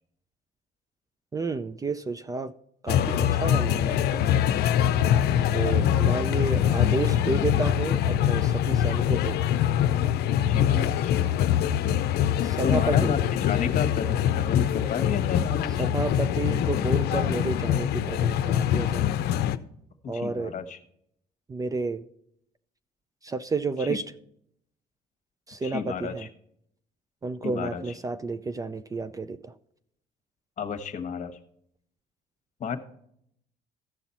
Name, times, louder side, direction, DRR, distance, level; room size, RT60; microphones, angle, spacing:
voice 1, 1.3-2.5 2.8-4.2 5.5-9.4 12.4-13.2 15.8-19.1 20.1-20.5 21.5-22.0 23.2-24.0 25.5-26.3 27.2-29.5, right 3 dB, 20° right, 12 dB, 0.4 m, -31 dB
sound 1, 2.9-19.6, left 10 dB, 70° left, 0.6 m, -24 dB
voice 2, 5.7-6.2 10.4-11.2 12.6-15.9 20.0-20.8 23.8-24.0 25.6-26.3 27.4-27.8 30.6-31.4 32.6-32.8, left 6 dB, 45° left, 9 dB, 1.2 m, -32 dB
15.0 x 5.8 x 4.1 m, 0.72 s
cardioid pair, 110°, 17 cm